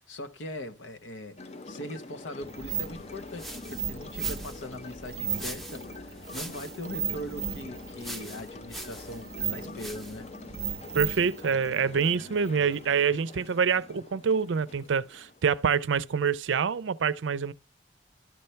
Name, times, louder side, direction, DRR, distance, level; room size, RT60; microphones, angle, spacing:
voice 1, 0.0-10.3, left 1 dB, 85° left, 1.0 m, -41 dB
sound 1, 1.4-16.1, left 3 dB, 35° left, 0.6 m, -45 dB
sound 2, 2.4-12.9, right 7 dB, 35° right, 0.7 m, -37 dB
sound 3, 3.0-10.3, right 1 dB, ahead, 0.7 m, -45 dB
voice 2, 10.9-17.5, right 6 dB, 80° right, 0.5 m, -26 dB
12.0 x 5.7 x 3.1 m
head